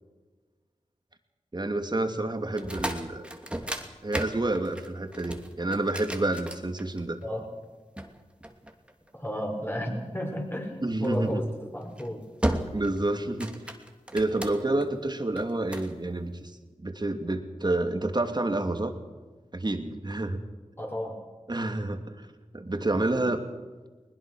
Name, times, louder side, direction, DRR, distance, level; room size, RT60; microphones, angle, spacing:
voice 1, 1.5-3.3 4.0-7.2 10.8-11.4 12.7-13.5 14.1-18.9 19.5-20.4 21.5-22.3 22.5-23.4, right 2 dB, 35° right, 6 dB, 2.7 m, -29 dB
sound 1, 2.5-7.2 8.0-9.3 11.0-11.3 11.8-12.1 12.4-13.0 13.3-14.8 15.4-15.9, right 1 dB, 10° right, 2.7 m, -34 dB
voice 2, 9.1-12.3 20.8-21.2, equal, 20° left, 2 dB, 6.0 m, -33 dB
21.0 x 20.5 x 6.4 m, 1.3 s
cardioid pair, 45°, 12 cm